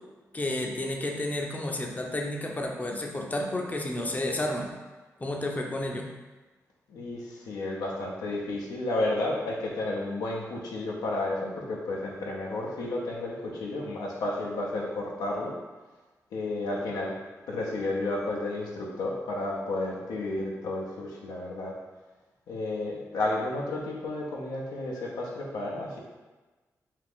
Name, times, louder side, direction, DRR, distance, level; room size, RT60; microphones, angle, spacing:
voice 1, 0.3-4.7 5.2-6.1, left 1 dB, 25° left, 1 dB, 0.5 m, -31 dB
voice 2, 6.9-15.6 16.3-17.2 17.5-21.8 22.5-26.0, left 2 dB, 85° left, -2 dB, 0.5 m, -32 dB
2.5 x 2.4 x 3.4 m, 1.2 s
supercardioid pair, 45°, 7 cm